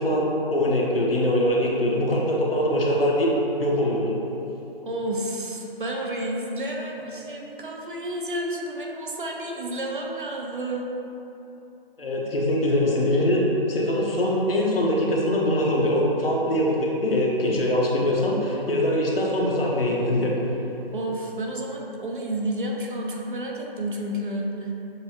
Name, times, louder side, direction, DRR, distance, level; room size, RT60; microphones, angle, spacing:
voice 1, 0.0-3.3 3.6-4.1 12.0-20.3, left 1 dB, 70° left, -3 dB, 0.9 m, -23 dB
voice 2, 4.8-10.9 20.9-24.7, right 1 dB, 55° right, 0 dB, 0.7 m, -30 dB
6.7 x 2.7 x 2.8 m, 3.0 s
figure-of-eight pair, 160°, 30 cm